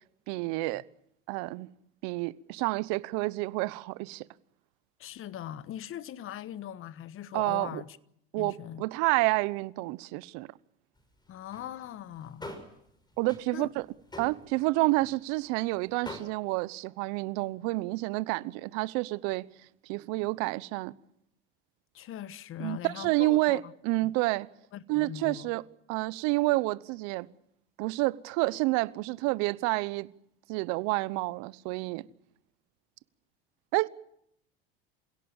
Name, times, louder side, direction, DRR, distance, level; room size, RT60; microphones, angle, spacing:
voice 1, 0.3-0.8 1.3-1.7 2.0-4.2 7.3-7.8 8.3-10.5 13.2-13.9 14.2-19.4 19.9-20.9 22.6-24.5 24.9-25.6 25.9-27.3 27.8-30.1 30.5-32.1 33.7-33.9, right 22 dB, 65° right, 1.0 m, -29 dB
voice 2, 5.0-8.0 8.3-8.8 11.3-12.6 13.5-13.7 21.9-23.7 24.0-24.1 24.7-25.5, left 11 dB, 45° left, 1.2 m, -41 dB
sound 1, 11.0-11.1 11.3-11.9 12.1-12.8 13.1-13.4 13.8-14.7 15.0-15.2 15.5-15.6 16.0-16.2, left 1 dB, 15° left, 5.9 m, -43 dB
27.0 x 17.0 x 7.2 m
hypercardioid pair, 90°, 29 cm